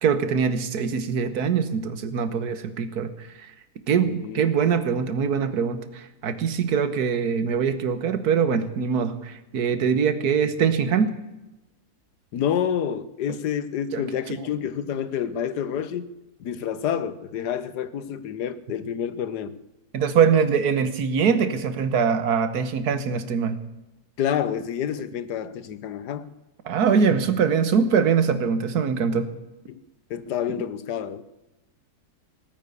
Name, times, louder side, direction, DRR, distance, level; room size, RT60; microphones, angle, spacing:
voice 1, 0.0-3.5 3.9-11.1 13.9-14.5 19.9-23.6 26.6-29.3, right 6 dB, 70° right, 1.7 m, -23 dB
voice 2, 3.9-4.4 12.3-16.1 16.4-19.5 24.2-26.3 29.7-29.8 30.1-31.2, left 9 dB, 85° left, 1.5 m, -28 dB
17.5 x 9.4 x 8.5 m
omnidirectional pair, 1.7 m